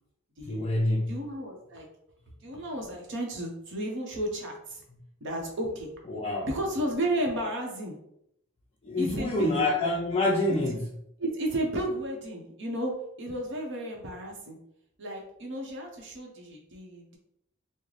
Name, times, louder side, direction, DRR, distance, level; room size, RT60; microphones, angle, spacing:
voice 1, 0.4-1.1 6.1-6.5 8.8-10.9, left 2 dB, 30° left, -2 dB, 0.4 m, -27 dB
voice 2, 1.1-1.9 2.4-4.8 5.2-5.9 6.4-7.9 9.0-9.7 11.2-12.9 13.2-14.6 15.0-17.2, right 1 dB, 55° right, 0 dB, 0.8 m, -33 dB
3.9 x 2.1 x 3.1 m, 0.75 s
head